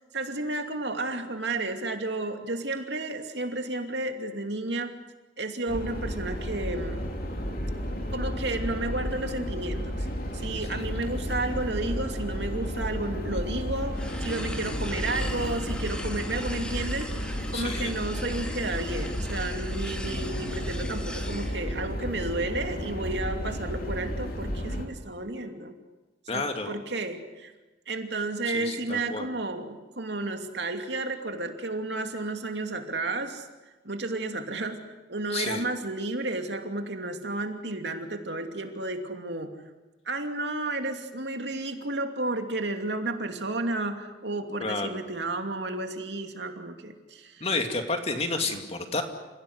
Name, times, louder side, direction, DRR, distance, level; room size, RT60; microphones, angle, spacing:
voice 1, 0.0-4.9 5.4-7.0 8.1-9.9 10.3-25.7 26.3-27.5 27.9-33.5 33.8-34.8 35.1-39.5 40.1-47.5 48.5-48.6, right 2 dB, 70° right, 5 dB, 2.7 m, -32 dB
sound 1, 5.7-24.9, equal, 55° left, 3.4 m, -33 dB
sound 2, 10.7-19.0 20.1-20.9, equal, 75° left, 4.1 m, -44 dB
sound 3, 13.9-21.6, equal, 5° left, 2.0 m, -41 dB
voice 2, 17.5-17.9 26.3-26.7 28.5-29.3 35.3-35.6 44.6-44.9 47.4-49.0, left 3 dB, 35° left, 5 dB, 2.6 m, -30 dB
29.0 x 16.5 x 9.7 m, 1.1 s
head